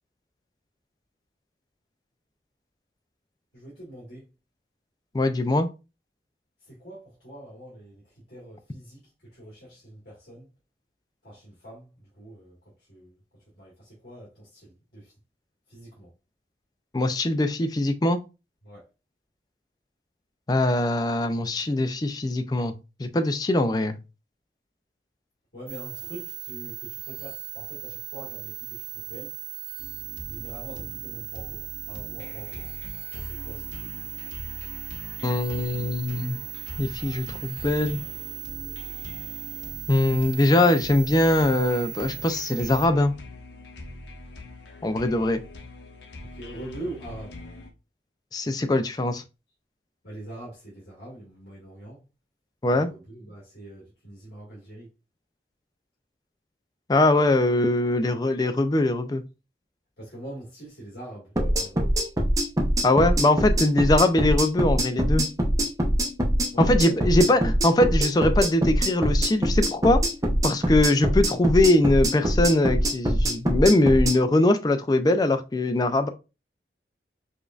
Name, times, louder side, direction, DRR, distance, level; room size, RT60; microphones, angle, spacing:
voice 1, 3.5-4.2 6.6-8.0 8.3-10.5 11.2-11.9 12.2-12.6 12.9-13.1 13.5-15.1 15.7-16.1 18.6-18.8 25.5-29.3 30.3-32.7 33.1-33.7 46.3-47.4 50.0-52.0 52.7-54.9 60.0-61.8 66.5-67.3 70.6-70.8, right 1 dB, 60° left, 1.6 m, -43 dB
voice 2, 5.1-5.7 16.9-18.2 20.5-22.7 23.0-24.0 35.2-36.4 36.8-38.0 39.9-43.1 44.8-45.4 48.3-49.2 52.6-52.9 56.9-59.2 62.8-65.3 66.6-70.0 70.4-76.1, left 2 dB, 20° left, 0.3 m, -22 dB
sound 1, 25.7-42.9, right 16 dB, 55° right, 1.2 m, -38 dB
sound 2, 29.8-47.7, left 2 dB, 80° left, 0.8 m, -42 dB
sound 3, 61.4-74.2, right 1 dB, 20° right, 0.6 m, -23 dB
5.0 x 2.5 x 2.4 m
head